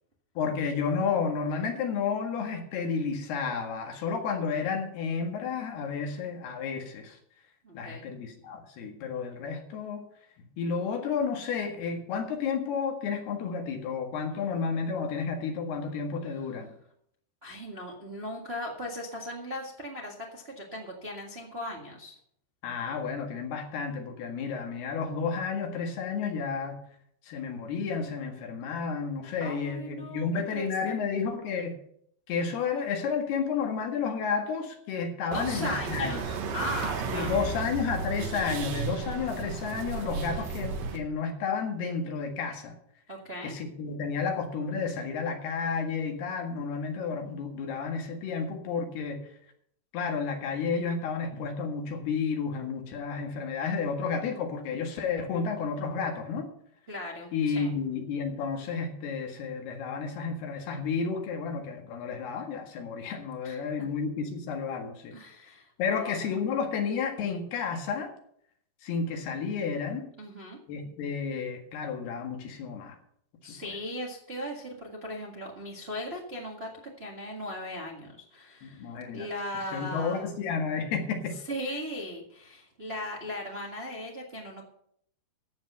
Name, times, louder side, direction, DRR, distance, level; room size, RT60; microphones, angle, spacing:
voice 1, 0.4-7.2 7.7-10.0 10.4-16.7 22.6-26.8 27.3-31.8 32.3-36.2 37.1-42.7 43.4-49.2 49.9-56.5 57.3-65.2 65.8-68.1 68.8-70.1 70.7-73.0 73.5-73.6 78.6-79.3 79.7-81.3, left 5 dB, 85° left, 3 dB, 3.8 m, -31 dB
voice 2, 7.6-8.1 16.2-16.5 17.4-22.2 29.4-31.0 35.2-37.6 43.1-43.6 56.9-57.7 63.4-63.9 65.1-66.3 70.2-70.6 73.4-80.3 81.3-84.6, left 1 dB, 35° right, -1 dB, 0.9 m, -38 dB
sound 1, 35.3-41.0, right 5 dB, 70° right, 2.8 m, -34 dB
14.0 x 8.2 x 5.6 m, 0.68 s
omnidirectional pair, 4.5 m